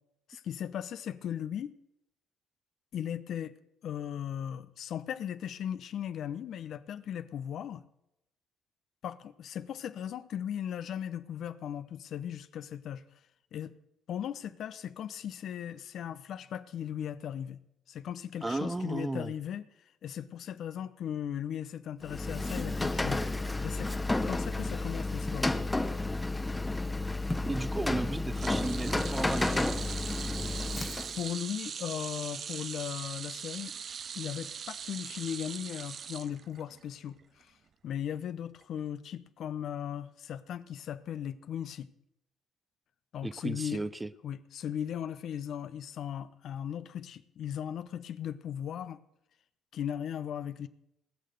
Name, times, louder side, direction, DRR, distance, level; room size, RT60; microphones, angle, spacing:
voice 1, 0.3-1.7 2.9-3.5 3.8-7.8 9.0-13.0 13.5-13.7 14.1-17.6 17.9-19.6 20.0-23.3 23.6-24.0 24.3-25.5 31.2-33.8 34.1-37.5 37.8-41.9 43.1-43.8 44.2-49.0 49.7-50.7, left 9 dB, 60° left, 0.6 m, -37 dB
voice 2, 18.4-19.3 27.4-29.9 43.2-44.1, right 2 dB, 20° right, 0.8 m, -34 dB
Rain, 22.0-31.3, left 2 dB, 15° left, 1.1 m, -31 dB
sound 1, 28.4-36.8 37.2-37.4 38.6-38.7, right 7 dB, 55° right, 0.6 m, -41 dB
19.5 x 6.6 x 7.8 m
hypercardioid pair, 45°, 0 cm